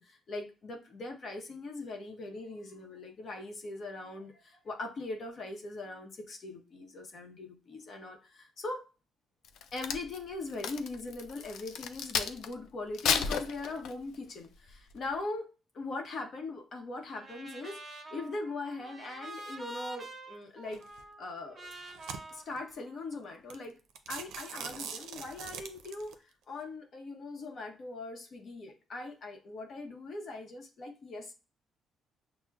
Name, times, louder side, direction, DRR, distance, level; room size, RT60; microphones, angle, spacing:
voice 1, 0.0-8.8 9.7-15.5 15.7-20.8 21.2-21.7 22.3-23.7 24.1-31.3, left 2 dB, 55° left, 2 dB, 0.8 m, -41 dB
Crack, 9.4-12.5 12.9-14.2 14.7-14.9, left 7 dB, 80° left, 0.4 m, -33 dB
Trumpet, 17.1-23.4, right 2 dB, 30° right, 0.8 m, -47 dB
sound 1, 20.7-21.0 21.6-22.6 23.1-23.2 23.5-23.7 24.0-26.1, right 7 dB, 85° right, 0.4 m, -42 dB
5.9 x 2.0 x 2.3 m, 0.32 s
cardioid pair, 90°, 0 cm